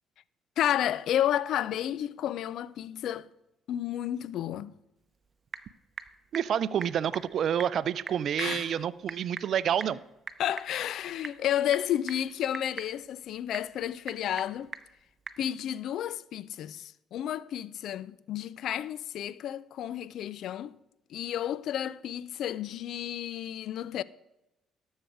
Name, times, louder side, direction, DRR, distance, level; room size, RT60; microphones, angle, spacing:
voice 1, 0.6-3.3 3.7-4.7 8.4-8.8 10.4-14.7 15.4-20.8 21.1-24.0, left 11 dB, 70° left, 0.4 m, -31 dB
Typing / Telephone, 5.0-15.5, right 4 dB, 35° right, 0.8 m, -45 dB
voice 2, 6.3-10.0, right 9 dB, 60° right, 0.4 m, -28 dB
12.5 x 6.5 x 4.7 m
hypercardioid pair, 60°, 0 cm